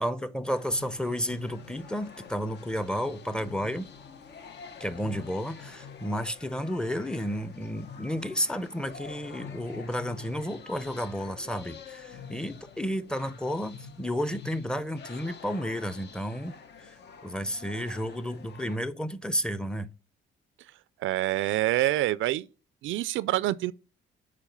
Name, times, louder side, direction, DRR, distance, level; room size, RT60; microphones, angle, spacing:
voice 1, 0.0-3.9 4.8-16.5 16.8-16.9 17.2-19.9, equal, 5° left, 0.7 m, -32 dB
sound 1, 0.5-18.8, left 6 dB, 60° left, 1.1 m, -47 dB
voice 2, 21.0-22.5 22.8-23.7, right 15 dB, 80° right, 0.4 m, -26 dB
7.4 x 4.8 x 5.3 m
cardioid pair, 90°, 20 cm